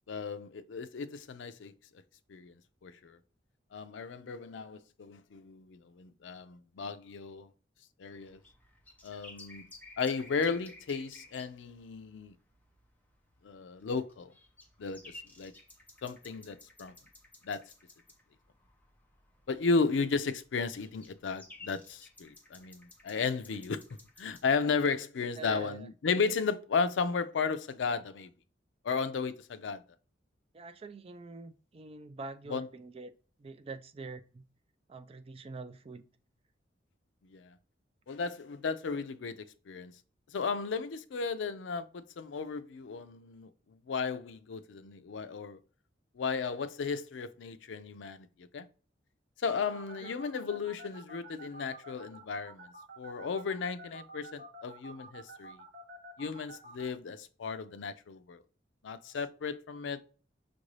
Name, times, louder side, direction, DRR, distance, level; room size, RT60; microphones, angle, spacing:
voice 1, 0.1-1.7 2.3-2.5 2.8-3.2 3.7-7.5 8.0-8.4 9.0-9.6 10.0-12.3 13.4-14.3 14.8-15.5 16.0-16.9 17.4-17.6 19.5-28.3 28.8-29.8 32.5-32.7 37.2-37.6 38.1-39.9 40.3-45.6 46.2-48.3 48.5-48.7 49.4-52.7 53.0-55.6 56.2-58.4 58.8-60.0, left 5 dB, 85° left, 0.4 m, -34 dB
sound 1, 8.1-24.5, left 2 dB, 10° left, 0.7 m, -56 dB
voice 2, 25.4-25.9 30.5-33.1 33.4-34.4 34.9-36.0 50.0-50.1, right 3 dB, 30° right, 0.4 m, -45 dB
sound 2, 49.7-56.9, right 1 dB, 55° right, 1.3 m, -49 dB
6.0 x 2.6 x 3.2 m
head